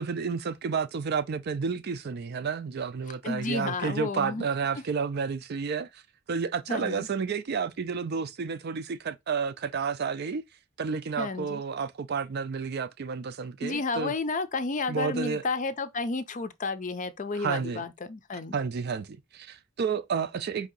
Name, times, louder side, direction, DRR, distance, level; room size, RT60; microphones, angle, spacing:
voice 1, 0.0-6.0 6.3-10.4 10.8-14.1 14.9-15.4 17.3-17.8 18.5-20.7, right 5 dB, 50° right, 0.4 m, -31 dB
voice 2, 3.2-4.5 6.7-7.1 11.2-11.6 13.6-18.6, left 3 dB, 40° left, 0.5 m, -31 dB
4.7 x 2.7 x 3.9 m
head